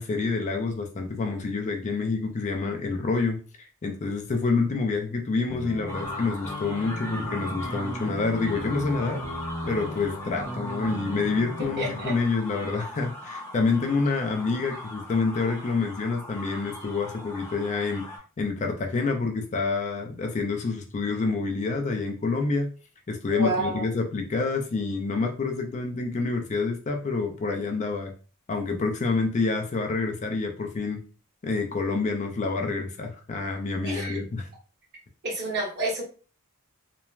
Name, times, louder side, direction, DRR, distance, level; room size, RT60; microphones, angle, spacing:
voice 1, 0.0-3.4 3.8-9.2 9.7-18.1 18.4-22.7 23.1-28.1 28.5-31.0 31.4-34.5, left 4 dB, 35° left, 4 dB, 0.4 m, -27 dB
sound 1, 5.5-12.1, equal, 60° left, 0.9 m, -36 dB
sound 2, 5.9-18.2, left 1 dB, 10° left, 0.7 m, -39 dB
voice 2, 11.8-12.1 23.3-23.8 33.8-34.2 35.2-36.0, right 1 dB, 50° right, -4 dB, 1.3 m, -29 dB
3.0 x 2.1 x 2.3 m, 0.37 s
head